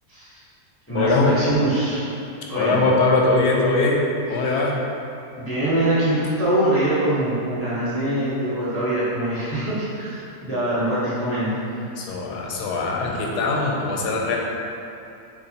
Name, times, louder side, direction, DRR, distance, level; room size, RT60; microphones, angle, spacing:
voice 1, 0.1-0.4 0.9-2.1 2.5-2.8 4.4-4.6 5.4-11.5, right 1 dB, 20° left, -12 dB, 0.3 m, -23 dB
voice 2, 0.9-1.3 2.5-4.8 12.0-14.4, left 3 dB, 90° left, -1 dB, 1.1 m, -21 dB
4.6 x 2.4 x 2.7 m, 2.6 s
omnidirectional pair, 1.7 m